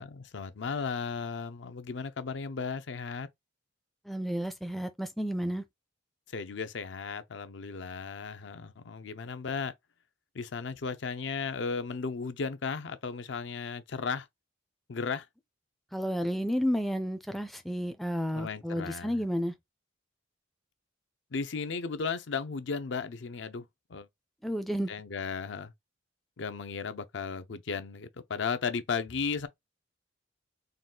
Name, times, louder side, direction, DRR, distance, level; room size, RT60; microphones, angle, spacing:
voice 1, 0.0-3.3 6.3-9.7 10.3-14.3 14.9-15.3 18.3-19.2 21.3-23.6 23.9-24.1 24.9-25.7 26.4-29.5, left 5 dB, 70° left, 0.5 m, -35 dB
voice 2, 4.1-5.6 15.9-19.5 24.4-24.9, equal, ahead, 0.4 m, -31 dB
3.9 x 2.4 x 3.7 m
head